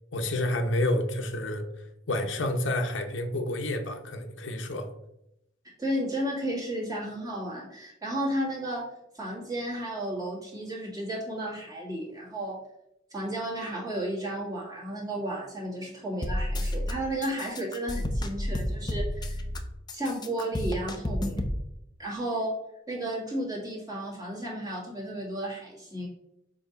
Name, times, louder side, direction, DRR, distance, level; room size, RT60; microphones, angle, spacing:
voice 1, 0.1-1.6 2.1-4.9, left 1 dB, 85° left, 5 dB, 0.8 m, -29 dB
voice 2, 5.8-8.8 9.1-12.6 13.1-19.4 19.9-21.5 22.0-22.5 22.9-26.1, right 1 dB, 20° right, -4 dB, 1.9 m, -33 dB
sound 1, 16.2-16.9 17.2-19.6 19.9-21.6, left 1 dB, 25° left, 0.6 m, -30 dB
6.7 x 2.9 x 5.1 m, 0.83 s
head